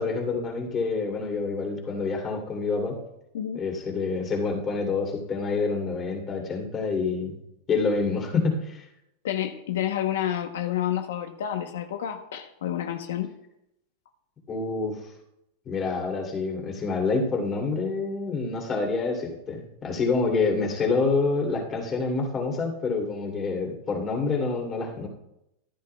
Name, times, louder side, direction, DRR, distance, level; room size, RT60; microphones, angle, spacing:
voice 1, 0.0-3.0 3.5-7.4 7.7-8.8 14.5-15.0 15.7-25.1, left 4 dB, 25° left, 0 dB, 2.8 m, -27 dB
voice 2, 9.2-13.3, left 11 dB, 85° left, 6 dB, 0.8 m, -29 dB
14.0 x 11.0 x 2.3 m, 0.85 s
supercardioid pair, 135°, 0 cm